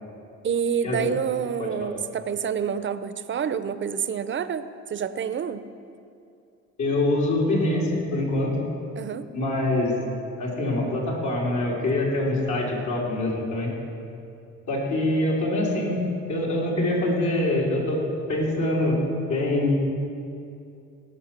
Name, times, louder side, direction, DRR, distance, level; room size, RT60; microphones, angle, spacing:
voice 1, 0.4-4.6 4.9-5.6 9.0-9.3, right 7 dB, 40° right, 12 dB, 0.6 m, -28 dB
voice 2, 6.8-8.5 9.3-10.0 10.4-13.7 14.7-16.0 16.3-18.0 18.3-19.0 19.3-19.7, left 1 dB, 70° left, -4 dB, 3.3 m, -24 dB
17.5 x 6.2 x 5.9 m, 2.5 s
cardioid pair, 90°, 30 cm